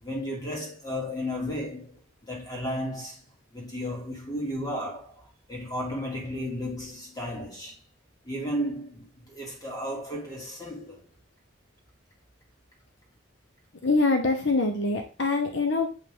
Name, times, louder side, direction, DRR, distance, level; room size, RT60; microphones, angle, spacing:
voice 1, 0.0-3.2 3.5-7.8 8.2-11.1, equal, 20° left, 2.4 m, -34 dB
voice 2, 13.8-15.9, left 3 dB, 60° left, 1.0 m, -24 dB
8.4 x 5.4 x 3.7 m
head